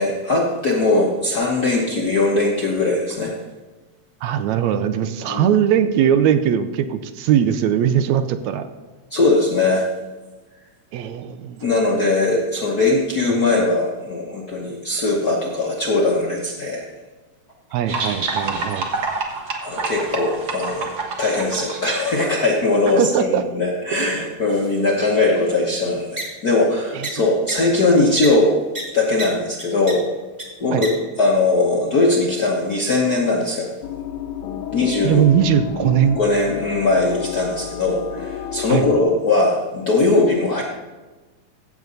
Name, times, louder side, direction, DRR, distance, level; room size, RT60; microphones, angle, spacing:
voice 1, 0.0-3.3 5.3-5.5 9.1-9.9 11.6-16.8 19.6-20.9 21.2-28.6 28.9-30.1 30.6-30.9 31.2-33.7 34.7-35.2 36.1-40.6, left 2 dB, 55° left, -2 dB, 1.0 m, -20 dB
voice 2, 4.2-8.7 10.9-11.7 17.7-18.9 23.0-23.4 24.0-24.1 26.9-27.1 30.7-30.9 35.0-36.2 38.7-38.8, right 9 dB, 80° right, 10 dB, 1.9 m, -20 dB
sound 1, 17.9-22.6, right 3 dB, 50° right, 1.7 m, -27 dB
sound 2, 26.2-26.3 27.0-27.1 27.5-27.6 28.2-28.3 28.7-28.8 29.2-29.3 29.6-29.9 30.4-30.5 30.8-30.9, right 2 dB, 15° right, 1.9 m, -27 dB
sound 3, 33.8-39.0, left 9 dB, 80° left, 2.1 m, -30 dB
15.5 x 7.4 x 4.0 m, 1.2 s
omnidirectional pair, 3.4 m